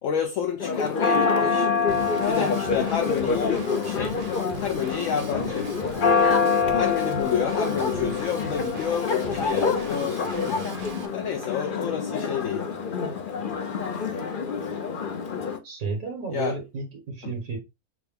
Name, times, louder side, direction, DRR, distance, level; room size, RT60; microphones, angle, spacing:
voice 1, 0.0-1.7 2.3-4.2 4.6-5.7 6.7-10.7 11.1-12.6 16.3-16.6 17.2-17.3, left 8 dB, 65° left, 0.9 m, -29 dB
Church bell, 0.6-15.6, left 5 dB, 50° left, 0.6 m, -26 dB
Drum kit / Drum, 1.9-11.1, right 4 dB, 35° right, 0.6 m, -40 dB
voice 2, 15.6-17.6, right 4 dB, 75° right, 1.6 m, -32 dB
6.0 x 2.2 x 3.5 m
omnidirectional pair, 1.5 m